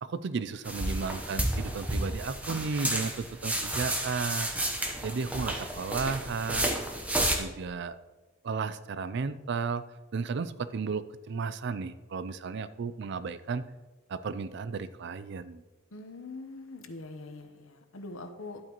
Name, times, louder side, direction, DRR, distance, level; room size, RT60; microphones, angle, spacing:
voice 1, 0.0-4.5 5.0-6.7 7.2-8.0 8.4-9.8 10.1-13.6 14.1-15.6, right 5 dB, 55° right, 14 dB, 0.4 m, -34 dB
sound 1, 0.6-7.4, right 1 dB, 5° right, 1.0 m, -31 dB
voice 2, 15.9-18.6, left 2 dB, 75° left, 7 dB, 1.0 m, -43 dB
11.5 x 8.7 x 3.0 m, 1.2 s
head